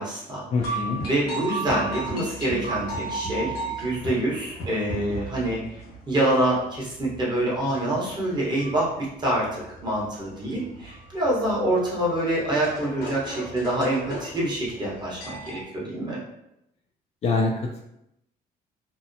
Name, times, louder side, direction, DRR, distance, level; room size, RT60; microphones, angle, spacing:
voice 1, 0.0-0.7 1.0-16.2, right 1 dB, 25° right, -5 dB, 1.0 m, -26 dB
voice 2, 0.5-1.0 17.2-17.8, left 3 dB, 40° left, 0 dB, 0.4 m, -25 dB
sound 1, 0.6-15.6, right 2 dB, 70° left, 1.2 m, -35 dB
2.7 x 2.1 x 2.6 m, 0.83 s
cardioid pair, 110°, 17 cm